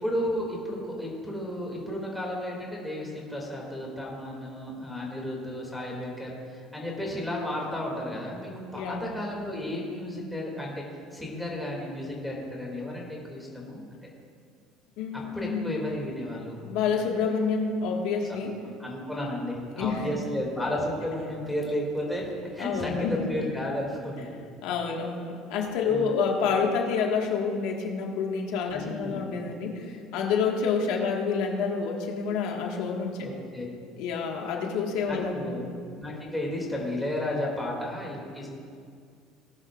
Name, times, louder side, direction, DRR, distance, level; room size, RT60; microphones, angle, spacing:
voice 1, 0.0-10.7 11.1-13.8 15.1-16.6 18.3-18.4 18.8-24.4 25.8-26.2 28.7-29.3 33.2-33.6 35.0-35.7 36.0-38.5, left 1 dB, ahead, -3 dB, 2.6 m, -33 dB
voice 2, 15.0-15.7 16.6-18.6 19.7-20.1 22.6-23.3 24.6-33.3 34.0-35.6, left 5 dB, 75° left, 1 dB, 1.7 m, -28 dB
18.0 x 11.0 x 2.5 m, 2.2 s
cardioid pair, 135°, 0 cm